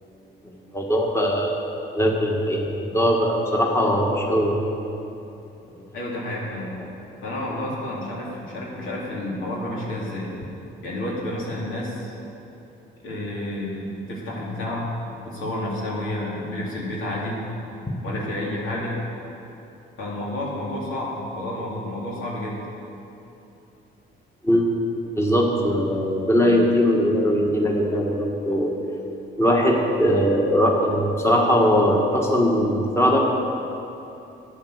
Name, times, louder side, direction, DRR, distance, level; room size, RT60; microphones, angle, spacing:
voice 1, 0.7-4.6 17.9-18.0 24.4-24.7 25.1-28.7 29.4-33.2, equal, 15° left, -1 dB, 1.7 m, -20 dB
voice 2, 5.9-6.7 7.2-10.3 10.8-12.1 13.0-14.9 15.2-17.4 18.0-19.0 20.0-22.6, left 1 dB, 80° left, -4 dB, 2.9 m, -30 dB
10.5 x 9.1 x 6.6 m, 2.9 s
cardioid pair, 90°, 20 cm